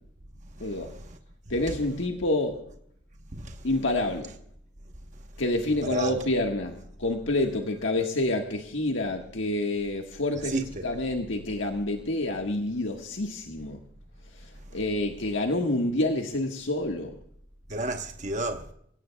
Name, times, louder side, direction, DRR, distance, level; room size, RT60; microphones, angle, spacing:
voice 1, 0.5-1.2 3.3-3.7 5.7-6.2 10.4-10.8 14.7-14.8 17.7-18.7, right 2 dB, 40° right, 1.0 m, -33 dB
voice 2, 1.5-2.6 3.6-4.3 5.4-13.8 14.4-17.1, left 2 dB, 85° left, 1.5 m, -28 dB
27.5 x 17.0 x 2.3 m
head